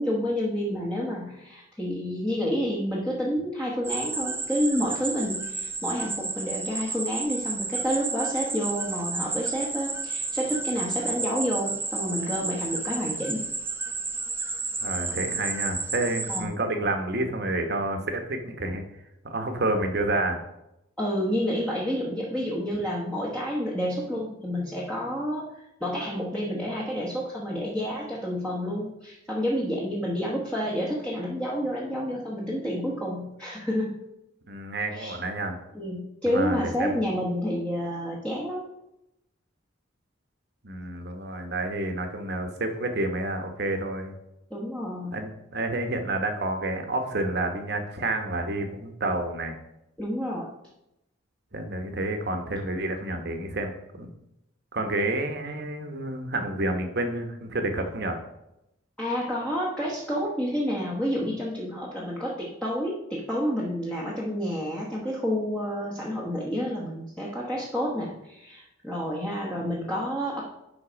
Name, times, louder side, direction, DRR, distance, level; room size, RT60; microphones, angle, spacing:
voice 1, 0.0-13.4 16.3-16.5 21.0-33.9 34.9-35.2 35.7-38.6 44.5-45.2 50.0-50.5 59.0-70.4, equal, 5° left, -6 dB, 1.1 m, -29 dB
sound 1, 3.8-16.4, right 3 dB, 10° right, 0.5 m, -31 dB
voice 2, 14.8-18.8 19.2-20.4 34.5-35.6 36.3-37.0 40.6-44.1 45.1-49.5 51.5-54.1 54.7-58.2, right 2 dB, 50° right, 5 dB, 1.1 m, -29 dB
10.5 x 3.9 x 5.1 m, 0.87 s
head